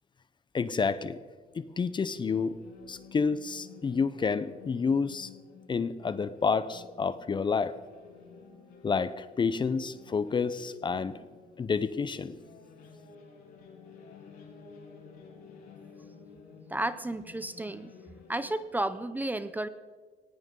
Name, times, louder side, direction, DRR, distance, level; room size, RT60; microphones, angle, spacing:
voice 1, 0.5-1.2 1.5-2.6 2.9-5.3 5.7-7.7 8.8-11.2 11.6-12.4, left 5 dB, 30° left, 14 dB, 0.7 m, -29 dB
sound 1, 1.5-18.6, left 5 dB, 75° left, 6.1 m, -53 dB
voice 2, 16.7-17.9 18.3-19.7, right 1 dB, 10° right, 13 dB, 0.6 m, -32 dB
19.0 x 17.0 x 3.8 m, 1.5 s
cardioid pair, 110°, 17 cm